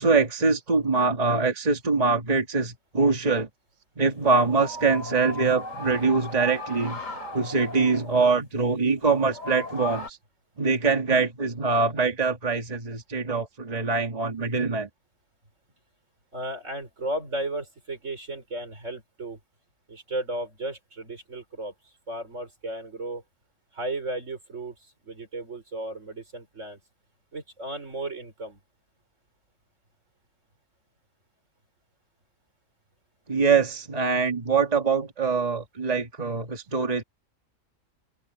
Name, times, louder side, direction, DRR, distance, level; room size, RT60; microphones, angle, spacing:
voice 1, 0.0-3.5 4.0-7.0 7.3-10.2 10.6-14.9 33.3-37.0, right 4 dB, 30° right, 1.8 m, -24 dB
sound 1, 4.1-10.1, left 2 dB, 80° left, 3.3 m, -38 dB
voice 2, 16.3-19.4 19.9-23.2 23.7-26.8 27.3-28.6, right 1 dB, 65° right, 5.2 m, -34 dB
open air
omnidirectional pair, 1.4 m